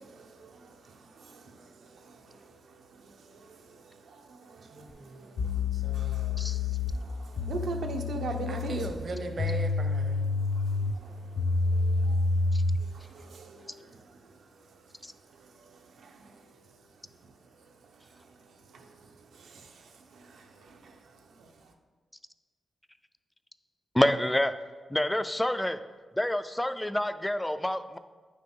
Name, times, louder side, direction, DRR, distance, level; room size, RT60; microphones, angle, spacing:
voice 1, 0.0-5.4 7.1-8.8 10.3-21.7, right 4 dB, 80° right, 3 dB, 0.9 m, -45 dB
voice 2, 4.6-5.5 5.8-6.2 8.5-10.2, right 3 dB, 45° right, 6 dB, 0.8 m, -38 dB
sound 1, 4.9-5.0 5.4-12.9, left 3 dB, 85° left, 0.7 m, -29 dB
voice 3, 23.9-24.5 24.9-25.8 26.2-28.0, left 1 dB, 5° left, 11 dB, 0.3 m, -27 dB
9.8 x 6.6 x 3.7 m, 1.4 s
wide cardioid pair, 170°, 0 cm